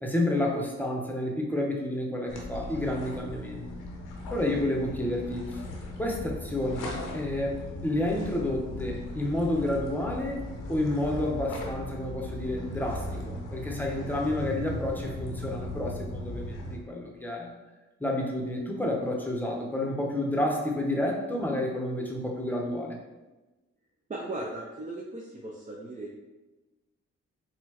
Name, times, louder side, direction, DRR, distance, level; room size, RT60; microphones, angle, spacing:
voice 1, 0.0-3.6 4.3-5.6 6.0-7.6 7.8-10.4 10.7-17.5 18.0-23.0, left 1 dB, 5° left, 0 dB, 0.8 m, -30 dB
sound 1, 2.3-16.8, left 1 dB, 85° left, 0.7 m, -38 dB
voice 2, 24.1-26.1, right 2 dB, 25° right, -3 dB, 0.5 m, -37 dB
4.1 x 2.2 x 2.9 m, 1.1 s
supercardioid pair, 45°, 31 cm